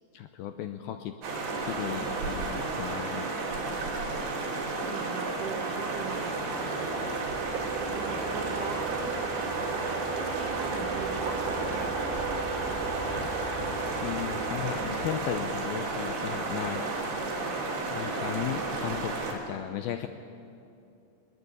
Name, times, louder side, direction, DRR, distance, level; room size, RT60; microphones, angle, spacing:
voice 1, 0.1-1.2 1.6-3.3 13.1-16.8 17.9-20.1, left 11 dB, 85° left, 8 dB, 2.1 m, -36 dB
sound 1, 1.2-19.3, right 3 dB, 60° right, 5.0 m, -32 dB
voice 2, 4.4-6.9 7.9-9.2 10.2-12.0 16.5-16.7, right 6 dB, 80° right, 5 dB, 1.9 m, -40 dB
sound 2, 5.6-15.8, right 4 dB, 45° right, 4.1 m, -37 dB
20.5 x 19.5 x 9.8 m, 2.6 s
omnidirectional pair, 5.3 m